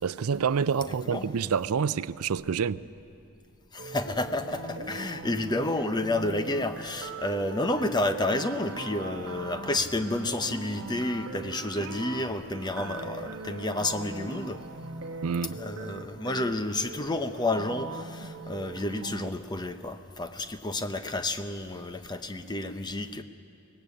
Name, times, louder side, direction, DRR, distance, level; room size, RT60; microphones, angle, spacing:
voice 1, 0.0-2.8 15.2-15.6, right 6 dB, 80° right, 0.5 m, -27 dB
voice 2, 3.7-14.6 15.6-23.2, left 2 dB, 20° left, 0.8 m, -30 dB
sound 1, 3.8-19.3, right 3 dB, 60° right, 1.1 m, -40 dB
23.0 x 19.0 x 8.5 m
head